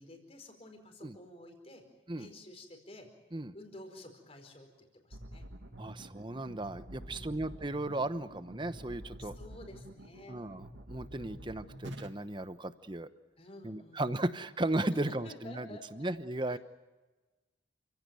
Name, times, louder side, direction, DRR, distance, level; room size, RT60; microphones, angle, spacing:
voice 1, 0.0-1.8 2.2-3.1 3.5-5.4 7.0-7.6 9.2-10.4 11.2-11.8 13.4-14.2 15.2-16.1 16.5-16.6, left 1 dB, 30° left, 4 dB, 4.6 m, -52 dB
sound 1, 5.1-12.1, right 1 dB, 75° right, 1.9 m, -48 dB
voice 2, 5.8-9.3 10.3-13.1 13.6-16.6, right 1 dB, 25° right, 12 dB, 0.9 m, -36 dB
29.5 x 17.0 x 9.3 m, 1.2 s
head